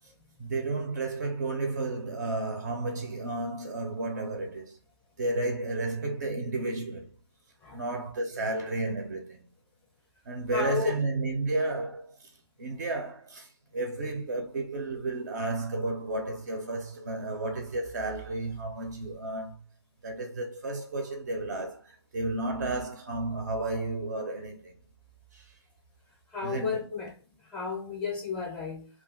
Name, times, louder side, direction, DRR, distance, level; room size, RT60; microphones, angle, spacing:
voice 1, 0.4-4.8 5.2-7.2 7.7-9.5 10.3-12.3 12.6-19.6 20.0-24.8 25.3-25.4 26.4-26.8, right 2 dB, 40° right, 0.5 m, -32 dB
voice 2, 10.5-10.9 26.3-27.1 27.4-28.9, left 5 dB, 5° left, 0.6 m, -32 dB
2.3 x 2.3 x 3.6 m
figure-of-eight pair, 150°, 15 cm